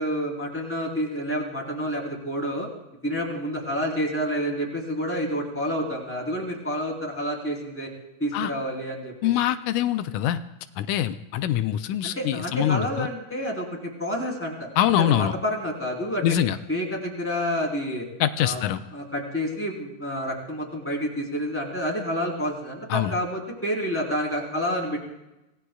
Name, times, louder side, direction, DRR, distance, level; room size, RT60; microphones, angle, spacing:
voice 1, 0.0-2.7 3.0-7.9 8.2-9.3 12.0-14.7 15.0-16.3 16.7-18.1 18.4-18.6 18.9-25.0, equal, 5° left, -3 dB, 3.7 m, -29 dB
voice 2, 9.2-10.4 10.8-13.1 14.8-15.3 16.2-16.6 18.2-18.8 22.9-23.2, left 11 dB, 85° left, 10 dB, 2.1 m, -24 dB
26.0 x 18.0 x 2.3 m, 0.94 s
omnidirectional pair, 3.4 m